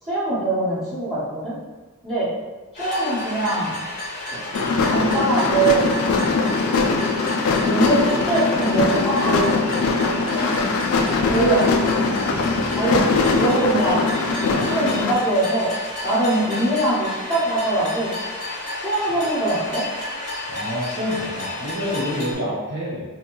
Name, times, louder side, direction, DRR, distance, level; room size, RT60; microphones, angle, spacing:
voice 1, 0.0-1.6 2.0-2.3 2.8-3.8 4.3-4.4 4.8-6.3 7.4-9.6 10.3-10.6 11.3-11.7 12.7-14.1 14.7-15.7 16.0-18.1 18.8-19.8, right 2 dB, 25° right, -14 dB, 0.9 m, -22 dB
sound 1, 2.7-22.3, left 1 dB, 35° left, 0.6 m, -31 dB
sound 2, 4.5-15.1, left 4 dB, 75° left, 0.3 m, -21 dB
sound 3, 8.6-8.7 9.2-10.5 11.1-13.4 13.8-15.7, right 1 dB, 85° right, 1.2 m, -35 dB
voice 2, 20.5-23.0, equal, 50° right, -7 dB, 0.9 m, -27 dB
2.6 x 2.2 x 2.9 m, 1.2 s
head